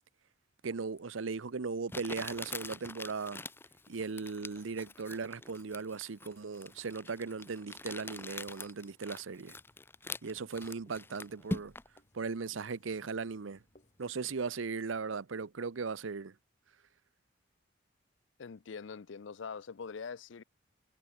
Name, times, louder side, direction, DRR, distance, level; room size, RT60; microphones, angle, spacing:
voice 1, 0.6-3.4 3.9-9.6 10.2-11.7 12.1-13.6 14.0-16.3, right 4 dB, 80° right, 0.7 m, -38 dB
Crumpling crinkling, 1.0-1.1 1.9-12.0, left 2 dB, 10° left, 0.5 m, -44 dB
Writing, 8.9-14.5, left 1 dB, 40° left, 4.3 m, -69 dB
voice 2, 18.4-20.4, left 5 dB, 70° left, 0.5 m, -43 dB
head